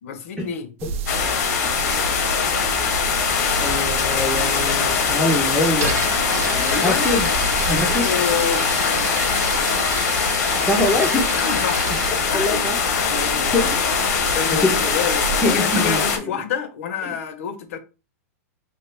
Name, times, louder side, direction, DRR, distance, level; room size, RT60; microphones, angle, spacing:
voice 1, 0.0-0.7 6.7-7.1 7.8-9.2 9.5-9.7 11.3-11.9 12.2-12.6 13.1-13.8 14.3-17.8, left 7 dB, 60° left, 0.7 m, -28 dB
sound 1, 0.8-16.2, right 3 dB, 55° right, 0.4 m, -32 dB
sound 2, 1.1-16.2, left 6 dB, 85° left, 1.1 m, -22 dB
voice 2, 3.6-6.0 6.4-7.3 7.7-8.1 10.6-11.4 12.3-12.8 13.5-13.8 14.6-14.7 15.4-16.3, left 2 dB, 5° left, 0.4 m, -23 dB
sound 3, 5.8-12.4, right 4 dB, 85° right, 0.7 m, -31 dB
3.2 x 2.2 x 3.2 m
supercardioid pair, 170°, 8 cm